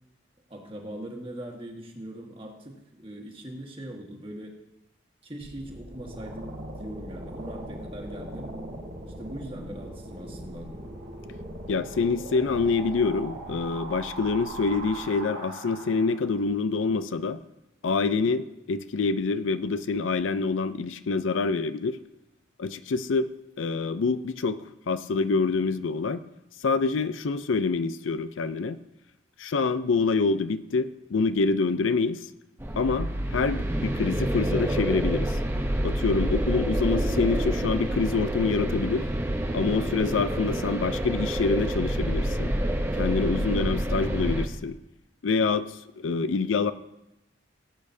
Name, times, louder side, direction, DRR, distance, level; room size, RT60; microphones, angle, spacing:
voice 1, 0.5-4.6 5.2-8.6 9.2-10.7, right 1 dB, 30° right, 1 dB, 1.5 m, -40 dB
sound 1, 5.4-16.4, right 1 dB, 65° right, 3.8 m, -40 dB
voice 2, 11.7-17.4 17.8-22.0 22.6-23.3 23.6-26.2 26.6-28.8 29.4-32.2 32.8-35.4 35.8-39.1 39.5-42.5 43.0-44.8 45.2-46.7, left 4 dB, 90° left, 13 dB, 0.5 m, -26 dB
sound 2, 32.6-44.4, right 1 dB, 15° right, 0.7 m, -28 dB
17.0 x 8.6 x 2.7 m, 0.90 s
head